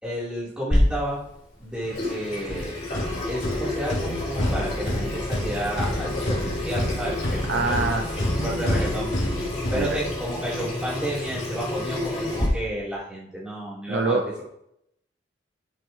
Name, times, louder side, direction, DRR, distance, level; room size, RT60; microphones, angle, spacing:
voice 1, 0.0-1.2 1.6-2.8 3.3-9.1 9.7-14.2, equal, 5° right, -8 dB, 3.8 m, -31 dB
Water tap faucet / Sink (filling or washing), 0.7-12.5, left 1 dB, 40° left, 3.6 m, -29 dB
sound 1, 2.5-10.5, left 1 dB, 90° left, 3.7 m, -29 dB
voice 2, 7.5-8.1 8.4-8.8 9.8-10.0 13.9-14.4, right 3 dB, 60° right, 4 dB, 0.8 m, -26 dB
11.5 x 8.0 x 3.2 m, 0.78 s
head